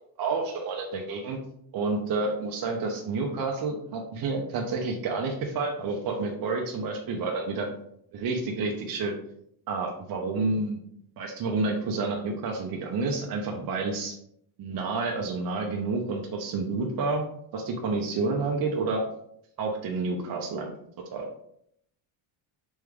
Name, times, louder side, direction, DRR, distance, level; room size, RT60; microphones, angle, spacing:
voice 1, 0.2-1.4 1.7-7.7 8.1-9.1 9.7-10.8 11.2-14.2 14.6-17.2 17.5-19.1 19.6-20.7 21.1-21.3, right 3 dB, 45° right, 0 dB, 0.6 m, -29 dB
3.5 x 3.3 x 3.5 m, 0.71 s
cardioid pair, 165°, 50 cm